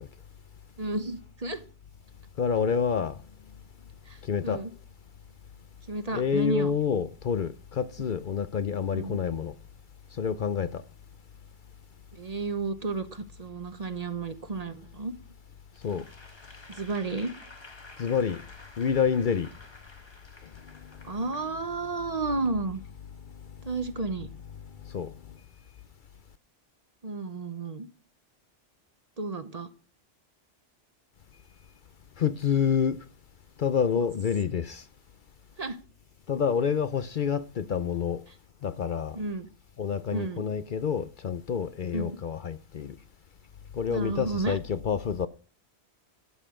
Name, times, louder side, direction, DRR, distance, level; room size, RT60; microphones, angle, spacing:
voice 1, 0.8-1.6 4.1-4.7 5.9-6.7 8.9-9.2 12.1-15.1 16.7-17.3 21.0-22.8 23.6-24.3 27.0-27.9 29.2-29.7 35.6-35.8 39.1-39.5 40.1-40.5 41.9-42.2 43.9-44.6, right 3 dB, 40° right, 1.0 m, -32 dB
voice 2, 2.4-3.2 4.2-4.6 6.1-9.5 10.2-10.8 15.8-16.0 18.0-18.4 18.8-19.5 24.9-25.1 32.2-33.0 33.6-34.8 36.3-38.2 38.6-39.2 39.8-42.9 43.7-45.3, left 7 dB, 55° left, 0.7 m, -28 dB
Applause / Crowd, 15.7-22.1, left 2 dB, 25° left, 1.3 m, -51 dB
12.5 x 8.9 x 3.7 m
omnidirectional pair, 1.1 m